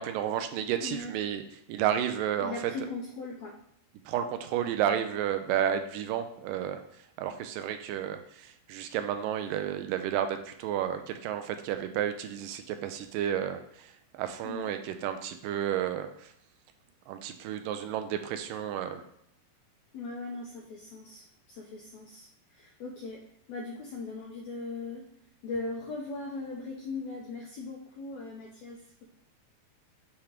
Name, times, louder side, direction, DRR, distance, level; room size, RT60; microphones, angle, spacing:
voice 1, 0.0-1.4 1.7-2.7 4.1-6.8 7.2-16.3 17.1-19.0, right 10 dB, 80° right, 8 dB, 2.1 m, -31 dB
voice 2, 0.8-1.1 2.4-3.6 14.4-14.7 19.9-23.2 23.5-25.1 25.4-29.1, left 3 dB, 90° left, 1 dB, 1.5 m, -39 dB
7.1 x 3.0 x 4.9 m, 0.71 s
omnidirectional pair, 4.1 m